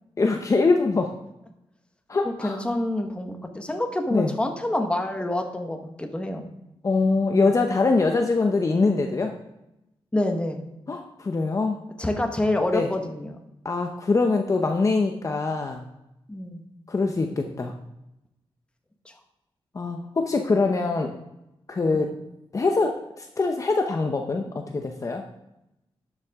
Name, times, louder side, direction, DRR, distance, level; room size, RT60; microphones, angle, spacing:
voice 1, 0.2-1.1 2.1-2.6 4.1-4.3 6.8-9.3 10.9-11.8 12.7-12.9 13.6-15.8 16.9-17.7 19.7-21.1 21.7-22.2 22.5-25.2, left 3 dB, 35° left, 3 dB, 0.7 m, -23 dB
voice 2, 2.2-6.5 10.1-10.6 12.0-13.4 16.3-16.6 19.0-19.1 21.9-22.1, left 1 dB, 10° left, 4 dB, 1.1 m, -27 dB
11.5 x 7.4 x 3.6 m, 0.88 s
wide cardioid pair, 120°, 10 cm